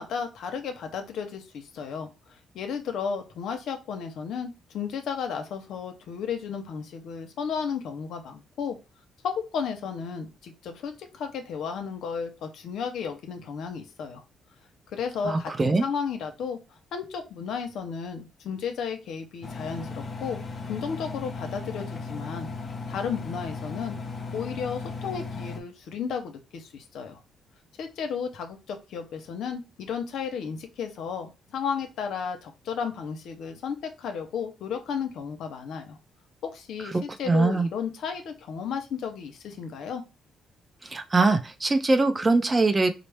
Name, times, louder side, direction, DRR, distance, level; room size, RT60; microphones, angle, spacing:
voice 1, 0.0-2.1 2.5-8.8 9.2-14.2 14.9-16.6 16.9-22.5 22.9-24.0 24.3-27.2 27.8-36.0 36.4-40.0, left 6 dB, 75° left, 6 dB, 0.7 m, -33 dB
voice 2, 15.2-15.8 36.9-37.7 40.8-42.9, right 3 dB, 25° right, 8 dB, 0.5 m, -22 dB
Engine, 19.4-25.6, left 4 dB, 40° left, 0.5 m, -36 dB
4.1 x 2.0 x 3.3 m, 0.28 s
cardioid pair, 90°, 0 cm